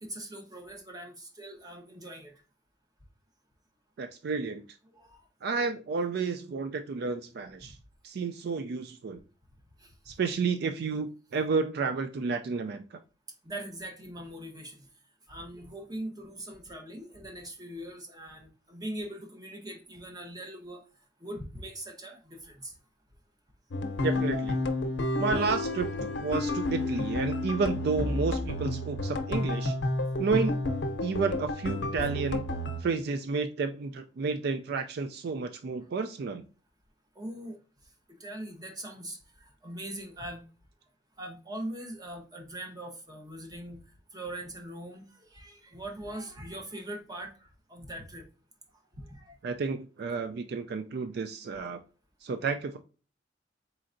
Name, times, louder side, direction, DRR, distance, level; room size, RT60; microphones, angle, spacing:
voice 1, 0.0-2.4 4.9-5.3 7.6-7.7 9.8-10.0 13.4-14.9 15.3-20.8 21.2-22.8 37.1-37.6 37.8-40.4 41.2-48.3 48.9-49.4, right 1 dB, 20° right, 3 dB, 0.9 m, -42 dB
voice 2, 4.0-4.6 5.4-7.8 8.0-9.2 10.1-12.8 24.0-24.6 25.2-25.9 26.1-29.8 30.2-30.5 31.0-32.5 32.8-36.4 49.4-51.8 52.2-52.8, right 4 dB, 60° right, 9 dB, 0.4 m, -31 dB
sound 1, 23.7-32.8, left 2 dB, 85° left, 0.7 m, -30 dB
4.4 x 3.8 x 2.5 m, 0.36 s
head